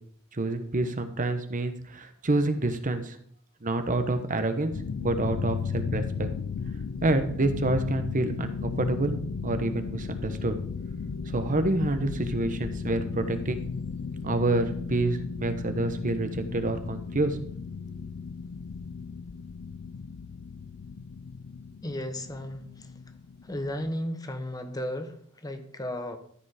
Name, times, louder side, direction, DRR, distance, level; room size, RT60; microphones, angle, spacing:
voice 1, 0.3-3.2 3.6-4.7 5.0-6.3 7.0-9.2 9.4-10.5 11.3-13.7 14.2-17.4, right 2 dB, 40° right, 9 dB, 1.0 m, -27 dB
sound 1, 4.7-23.9, left 5 dB, 70° left, 0.5 m, -35 dB
voice 2, 21.8-22.9 23.4-26.2, left 1 dB, 20° left, 7 dB, 1.0 m, -34 dB
13.5 x 5.1 x 4.9 m, 0.63 s
head